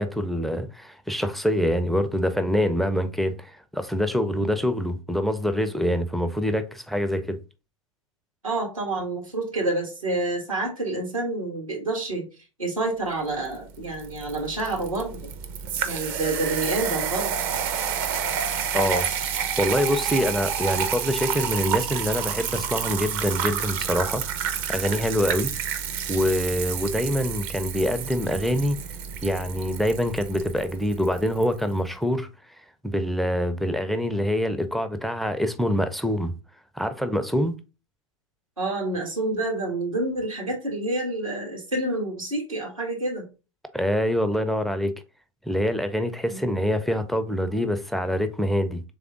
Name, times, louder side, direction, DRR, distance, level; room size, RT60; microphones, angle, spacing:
voice 1, 0.0-7.4 18.7-19.1 19.6-25.5 26.1-28.8 29.2-32.3 32.8-36.3 36.8-37.5 43.7-44.9 45.5-48.8, equal, ahead, 0.4 m, -25 dB
voice 2, 8.4-12.2 12.6-15.3 15.8-17.5 38.6-43.3 46.3-46.6, right 2 dB, 90° right, 1.9 m, -28 dB
sound 1, 13.5-31.5, right 8 dB, 50° right, 0.7 m, -29 dB
3.5 x 3.4 x 3.7 m
figure-of-eight pair, 90°, 17 cm